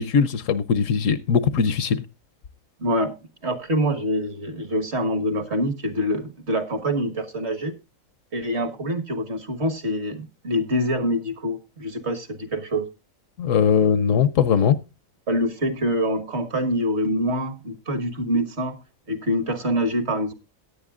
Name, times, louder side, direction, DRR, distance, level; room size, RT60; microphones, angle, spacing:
voice 1, 0.0-2.0 13.4-14.8, left 7 dB, 70° left, 1.1 m, -20 dB
voice 2, 2.8-3.2 3.4-7.7 8.3-12.9 15.3-18.8 19.1-20.3, equal, 50° right, 1.7 m, -25 dB
17.0 x 9.9 x 2.4 m
omnidirectional pair, 1.4 m